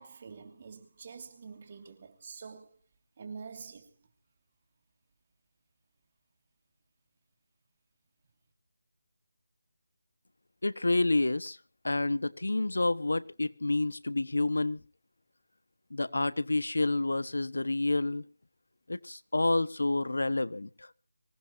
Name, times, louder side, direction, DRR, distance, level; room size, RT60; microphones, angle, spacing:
voice 1, 0.0-2.8 3.2-3.9, right 5 dB, 30° right, 2.9 m, -46 dB
voice 2, 10.6-11.6 11.8-14.8 15.9-18.2 18.9-20.9, left 2 dB, 80° left, 1.2 m, -29 dB
25.5 x 17.0 x 2.7 m
figure-of-eight pair, 170°, 0 cm